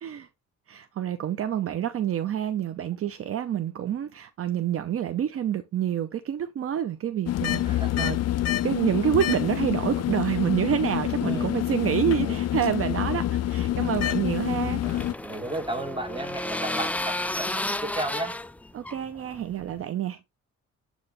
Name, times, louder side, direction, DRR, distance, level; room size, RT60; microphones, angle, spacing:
voice 1, 0.7-8.2 8.6-14.8 18.7-20.2, right 10 dB, 50° right, 0.6 m, -28 dB
sound 1, 7.3-15.1, left 13 dB, 55° left, 0.5 m, -27 dB
voice 2, 7.7-8.1 11.2-11.6 12.2-12.4 14.8-18.4, right 2 dB, 15° right, 1.6 m, -34 dB
sound 2, 14.3-19.8, left 1 dB, 5° left, 0.4 m, -32 dB
8.8 x 3.1 x 3.9 m
cardioid pair, 90°, 30 cm